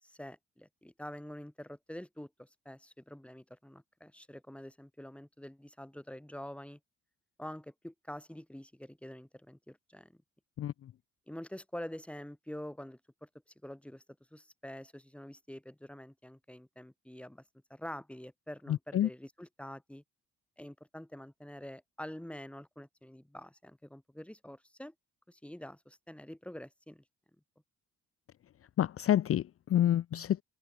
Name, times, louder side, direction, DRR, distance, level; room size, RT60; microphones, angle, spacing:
voice 1, 0.0-6.8 7.4-10.1 11.3-13.3 13.6-14.0 14.3-17.4 17.7-20.0 20.6-24.9 25.3-27.0, left 1 dB, 5° left, 7.3 m, -46 dB
voice 2, 18.7-19.1 28.8-30.4, left 11 dB, 50° left, 0.6 m, -28 dB
open air
cardioid pair, 90°, 30 cm